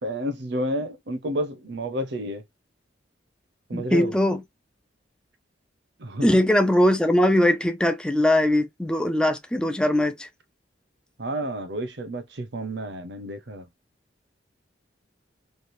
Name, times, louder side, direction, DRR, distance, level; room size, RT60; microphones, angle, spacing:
voice 1, 0.0-2.4 3.7-4.1 6.0-6.3 11.2-13.7, equal, 65° right, 0.8 m, -30 dB
voice 2, 3.7-4.4 6.2-10.3, left 1 dB, 5° left, 0.4 m, -21 dB
3.2 x 2.4 x 2.6 m
head